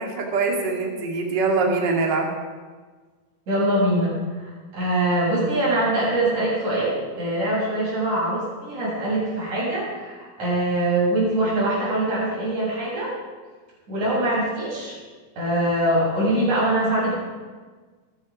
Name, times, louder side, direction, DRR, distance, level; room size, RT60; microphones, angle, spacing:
voice 1, 0.0-2.3, right 3 dB, 35° right, 1 dB, 2.5 m, -23 dB
voice 2, 3.5-13.1 13.9-15.0 15.4-17.2, right 1 dB, 60° right, -6 dB, 8.5 m, -23 dB
27.0 x 10.0 x 5.1 m, 1.4 s
omnidirectional pair, 3.8 m